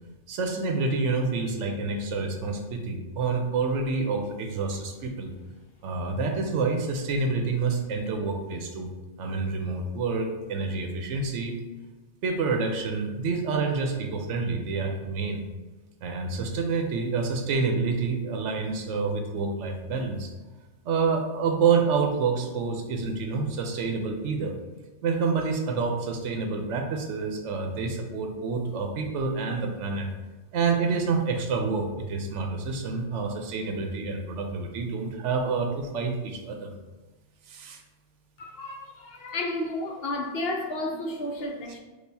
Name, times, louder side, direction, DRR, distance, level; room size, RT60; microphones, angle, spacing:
voice 1, 0.3-5.3 5.8-8.9 9.2-11.6 12.2-15.4 16.0-20.3 20.8-24.5 25.0-30.1 30.5-36.7 37.5-37.8, right 4 dB, 80° right, 3 dB, 1.0 m, -28 dB
voice 2, 38.4-41.8, left 1 dB, 65° left, 2 dB, 0.7 m, -32 dB
6.4 x 2.4 x 2.7 m, 1.2 s
omnidirectional pair, 1.2 m